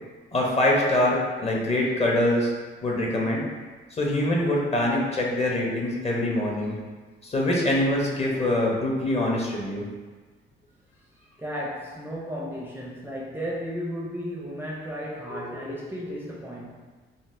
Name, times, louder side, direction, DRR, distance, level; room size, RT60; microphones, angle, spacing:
voice 1, 0.3-2.5 2.8-3.4 3.9-6.8 7.2-9.8 15.3-15.8, left 1 dB, 30° left, -2 dB, 0.7 m, -24 dB
voice 2, 11.4-16.7, equal, 10° right, -4 dB, 0.4 m, -34 dB
3.8 x 2.1 x 2.5 m, 1.4 s
cardioid pair, 90°, 20 cm